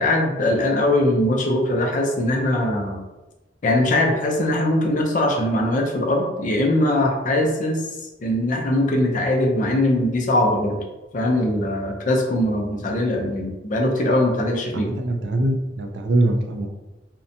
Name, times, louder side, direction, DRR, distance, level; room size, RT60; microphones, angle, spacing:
voice 1, 0.0-3.0 3.6-7.8 8.2-10.8 11.1-14.9, left 1 dB, 45° left, 1 dB, 0.4 m, -21 dB
voice 2, 14.7-16.7, right 1 dB, 65° right, 4 dB, 0.4 m, -23 dB
2.7 x 2.1 x 2.6 m, 1.1 s
head